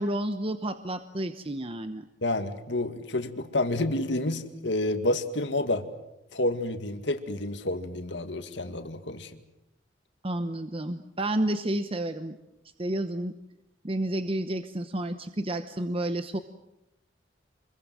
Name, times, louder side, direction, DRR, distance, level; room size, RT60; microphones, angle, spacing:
voice 1, 0.0-2.1 10.2-12.4 12.8-13.3 13.8-16.4, right 1 dB, 30° right, 9 dB, 1.0 m, -30 dB
voice 2, 2.2-5.8 6.3-9.3, left 1 dB, 70° left, 7 dB, 2.1 m, -29 dB
28.0 x 22.5 x 7.7 m, 0.91 s
head